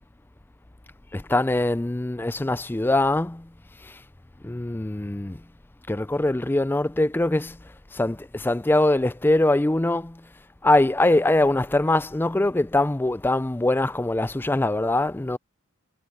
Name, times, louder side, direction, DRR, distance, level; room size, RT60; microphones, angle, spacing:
voice 1, 1.1-3.5 3.8-4.0 4.4-5.4 5.9-7.6 7.9-10.3 10.6-15.4, left 2 dB, 10° left, 0.4 m, -23 dB
head